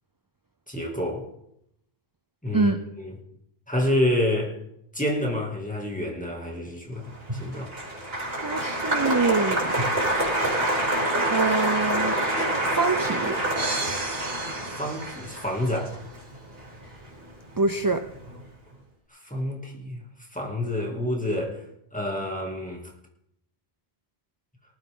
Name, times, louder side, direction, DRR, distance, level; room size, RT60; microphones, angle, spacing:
voice 1, 0.7-1.3 2.4-2.7 3.0-3.2 3.7-4.6 4.9-7.7 14.6-16.0 19.1-20.0 20.3-21.6 21.9-22.8, left 1 dB, 5° left, -1 dB, 2.4 m, -28 dB
Applause, 7.1-17.5 17.8-18.4, right 1 dB, 70° right, 3.8 m, -27 dB
voice 2, 8.4-9.7 11.3-12.2 12.7-13.4 17.6-18.0, right 3 dB, 30° right, 8 dB, 0.4 m, -25 dB
sound 1, 13.6-15.8, right 3 dB, 90° right, 1.9 m, -35 dB
19.0 x 12.0 x 3.8 m, 0.78 s
omnidirectional pair, 1.1 m